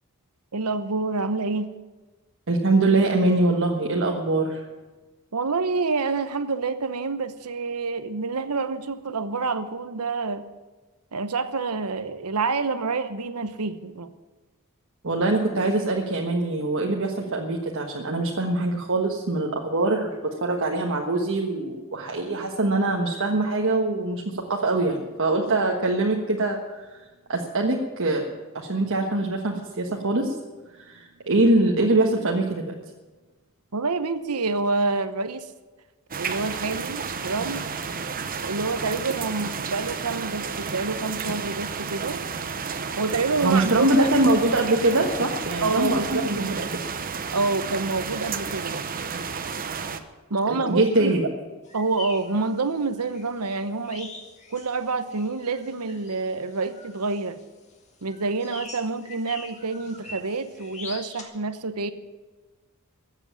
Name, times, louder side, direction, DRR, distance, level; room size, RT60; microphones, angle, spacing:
voice 1, 0.5-1.7 5.3-10.5 11.1-14.1 33.7-35.5 36.2-37.6 38.4-42.2 43.0-44.1 45.6-46.7 47.3-48.8 50.3-51.2 51.7-54.1 54.5-57.4 58.0-61.9, right 3 dB, 85° right, 11 dB, 1.0 m, -27 dB
voice 2, 2.5-4.6 15.0-26.9 27.3-28.3 28.5-30.4 30.8-32.8 43.4-46.8 50.4-51.3, right 2 dB, 60° right, 0 dB, 1.4 m, -23 dB
sound 1, 36.1-50.0, right 5 dB, 40° right, 0.9 m, -32 dB
sound 2, 51.6-61.2, left 3 dB, 30° left, 2.0 m, -44 dB
14.5 x 8.1 x 9.7 m, 1.3 s
head